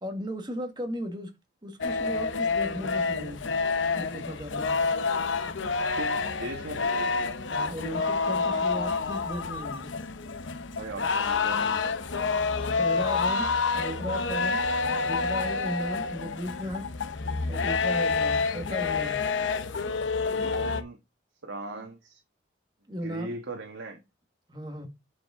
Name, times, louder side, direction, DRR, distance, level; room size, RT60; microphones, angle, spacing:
voice 1, 0.0-1.3 1.6-3.6 3.9-4.8 7.5-10.0 12.8-14.7 15.1-16.9 17.5-19.2 22.9-23.3 24.5-24.9, equal, 25° right, 1.6 m, -36 dB
sound 1, 1.8-20.8, left 4 dB, 75° left, 0.7 m, -28 dB
voice 2, 6.0-7.3 10.7-12.2 18.2-18.4 20.3-21.0 21.4-22.2 23.0-24.0, right 2 dB, 80° right, 1.4 m, -39 dB
9.2 x 5.0 x 3.6 m
head